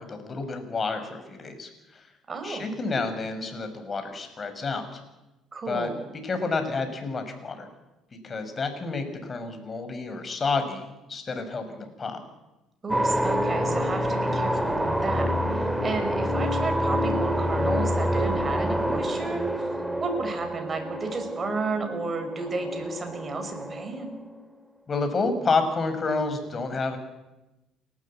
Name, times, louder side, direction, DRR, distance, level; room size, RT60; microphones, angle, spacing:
voice 1, 0.0-2.1 2.4-5.0 5.7-5.9 6.2-7.7 8.2-12.2 24.9-27.0, left 3 dB, 35° left, 7 dB, 5.6 m, -29 dB
voice 2, 2.3-2.7 5.5-6.0 12.8-19.7 20.0-24.2, right 4 dB, 35° right, 6 dB, 5.9 m, -33 dB
sound 1, 12.9-24.3, equal, 5° right, 3.3 m, -27 dB
29.0 x 13.0 x 8.5 m, 1.0 s
hypercardioid pair, 55°, 0 cm